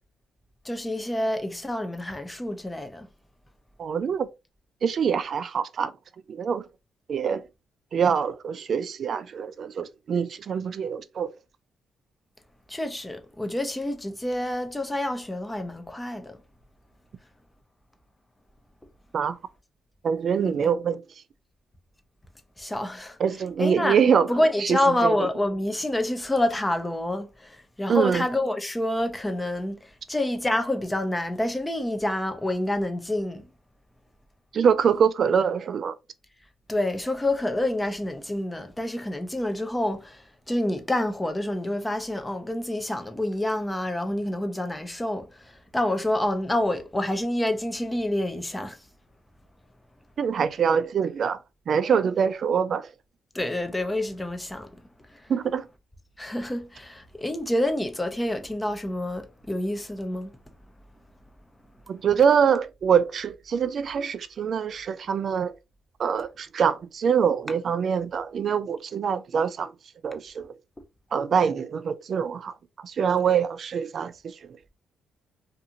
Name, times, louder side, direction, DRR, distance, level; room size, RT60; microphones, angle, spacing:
voice 1, 0.6-3.1 12.7-16.4 20.4-20.5 22.6-23.2 23.6-24.0 24.3-33.4 36.7-48.8 53.3-54.8 55.1-55.3 56.2-60.3, left 1 dB, 10° left, 0.6 m, -28 dB
voice 2, 3.8-4.3 4.8-5.9 6.3-6.7 7.1-7.4 7.9-11.3 19.1-19.4 20.0-21.0 23.2-24.3 24.6-25.3 27.9-28.2 34.5-36.0 50.2-51.4 51.7-52.9 55.3-55.7 61.9-65.6 66.0-69.7 70.0-70.5 71.1-74.4, right 7 dB, 55° right, 0.3 m, -24 dB
2.5 x 2.4 x 2.8 m
cardioid pair, 90°, 0 cm